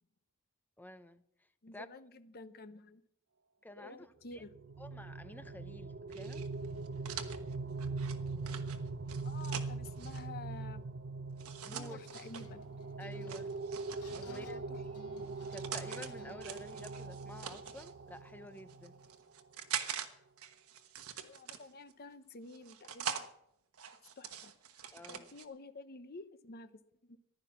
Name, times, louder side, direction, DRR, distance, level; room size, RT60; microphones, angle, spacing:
voice 1, 0.8-1.2 1.7-1.9 3.6-4.4 4.8-6.4 7.1-7.2 11.6-12.0 13.0-13.5 14.2-14.6 15.0-19.0 24.9-25.3, left 1 dB, 10° left, 11 dB, 0.6 m, -51 dB
voice 2, 1.6-3.0 3.7-4.5 9.2-10.8 11.7-12.6 14.3-15.1 21.2-23.3 24.2-27.2, left 3 dB, 45° left, 12 dB, 0.8 m, -51 dB
sound 1, 4.3-19.1, right 3 dB, 50° right, 0.6 m, -42 dB
sound 2, 6.1-10.2 11.4-12.5 13.3-14.5 15.2-16.1 16.4-17.9 18.6-20.1 20.4-21.9 22.5-23.3 23.7-25.5, right 7 dB, 75° right, 1.2 m, -44 dB
sound 3, 11.6-19.2, left 4 dB, 85° left, 0.9 m, -60 dB
15.0 x 11.5 x 6.0 m, 0.77 s
head